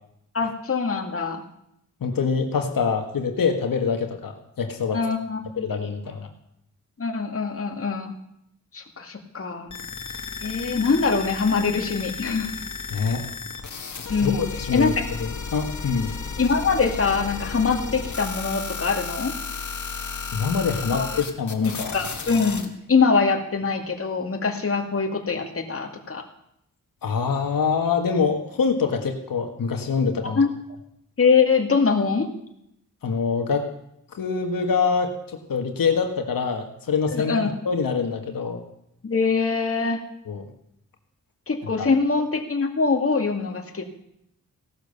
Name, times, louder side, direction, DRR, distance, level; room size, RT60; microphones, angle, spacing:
voice 1, 0.3-1.4 4.9-5.7 7.0-8.2 8.7-9.8 10.4-12.5 14.1-15.0 16.4-19.3 20.9-21.1 21.6-26.3 30.2-30.5 31.2-32.3 37.1-37.5 39.0-40.0 41.5-43.8, left 4 dB, 40° left, 3 dB, 2.1 m, -23 dB
voice 2, 2.0-5.0 5.6-6.3 12.9-13.3 14.2-14.9 15.2-16.1 20.3-22.1 27.0-30.4 33.0-33.7 34.1-35.1 35.5-38.6 40.3-40.5, left 5 dB, 80° left, 4 dB, 1.8 m, -25 dB
sound 1, 9.7-22.7, left 5 dB, 60° left, 2.0 m, -33 dB
16.5 x 12.0 x 6.7 m, 0.76 s
wide cardioid pair, 100°, 33 cm